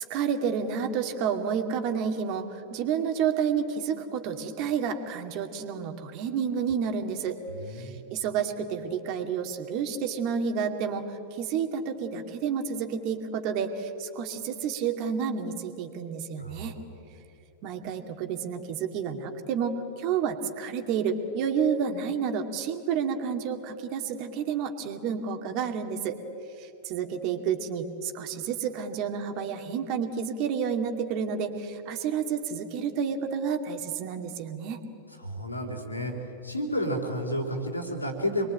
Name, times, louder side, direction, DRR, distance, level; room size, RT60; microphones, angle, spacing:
voice 1, 0.0-7.4 7.7-16.8 17.6-26.2 26.6-34.8, right 7 dB, 45° right, 5 dB, 2.4 m, -30 dB
voice 2, 7.6-7.9 16.4-16.7 35.2-36.1 36.4-38.5, equal, 85° left, 3 dB, 4.0 m, -31 dB
27.5 x 22.5 x 9.0 m, 2.7 s
figure-of-eight pair, 90°, 0 cm